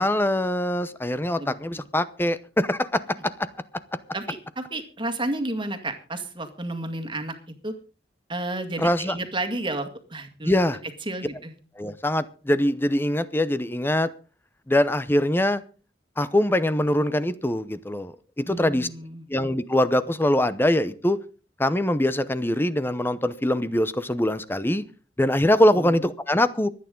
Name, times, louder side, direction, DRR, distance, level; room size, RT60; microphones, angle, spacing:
voice 1, 0.0-3.5 8.8-9.1 10.4-10.8 11.8-14.1 14.7-15.6 16.2-18.9 19.3-21.2 21.6-24.8 25.2-26.7, left 1 dB, 15° left, 14 dB, 0.7 m, -23 dB
voice 2, 1.4-1.8 4.1-7.4 7.6-7.7 8.3-10.6 11.0-11.6 18.5-19.2 25.7-25.9, right 2 dB, 30° right, 7 dB, 2.0 m, -32 dB
24.5 x 9.4 x 3.8 m, 0.37 s
head